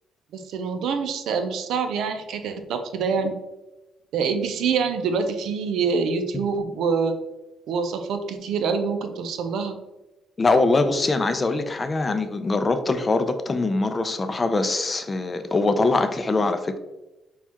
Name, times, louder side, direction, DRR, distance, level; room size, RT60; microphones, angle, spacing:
voice 1, 0.3-3.3 4.1-7.2 7.7-9.8, right 5 dB, 80° right, 7 dB, 0.5 m, -25 dB
voice 2, 10.4-16.8, left 3 dB, 30° left, 8 dB, 0.4 m, -23 dB
6.1 x 2.3 x 2.8 m, 1.0 s
cardioid pair, 90°, 0 cm